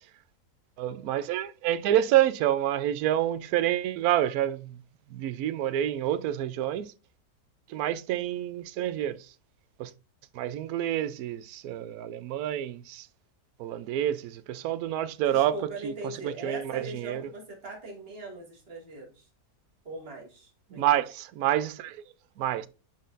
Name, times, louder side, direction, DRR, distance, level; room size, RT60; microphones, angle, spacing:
voice 1, 0.8-4.8 5.1-6.9 7.7-9.3 9.8-9.9 10.3-13.1 13.6-17.3 20.7-22.0 22.4-22.7, right 12 dB, 70° right, 1.0 m, -28 dB
voice 2, 15.3-19.3 19.8-21.0, right 2 dB, 35° right, 2.4 m, -40 dB
10.0 x 4.0 x 2.5 m
omnidirectional pair, 1.8 m